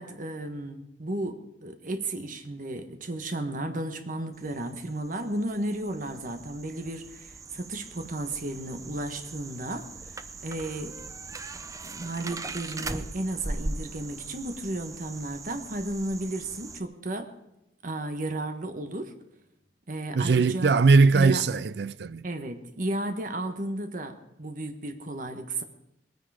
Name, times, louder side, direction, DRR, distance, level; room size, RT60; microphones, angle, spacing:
voice 1, 0.0-10.9 11.8-17.3 17.8-19.1 19.9-20.7 21.1-21.4 22.2-25.6, right 1 dB, 50° right, 1.4 m, -34 dB
sound 1, 4.4-16.8, right 2 dB, 20° right, 0.6 m, -40 dB
voice 2, 20.1-22.3, right 4 dB, 65° right, 0.5 m, -20 dB
20.5 x 9.6 x 4.9 m
head